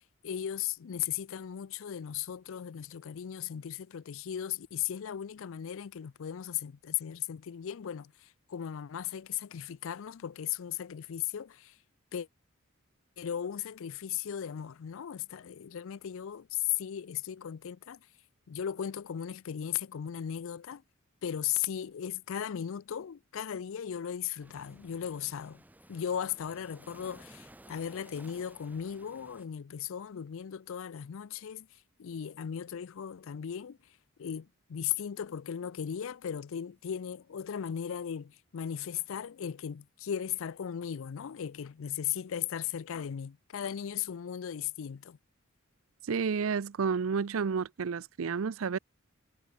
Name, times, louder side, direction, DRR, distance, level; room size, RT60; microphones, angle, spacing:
voice 1, 0.2-11.8 12.1-12.3 13.2-18.0 18.5-20.8 21.2-25.6 25.9-31.7 32.0-33.8 34.2-45.2, left 9 dB, 65° left, 0.4 m, -37 dB
sound 1, 24.4-29.5, right 1 dB, 10° right, 1.0 m, -55 dB
voice 2, 46.0-48.8, right 5 dB, 70° right, 0.5 m, -31 dB
head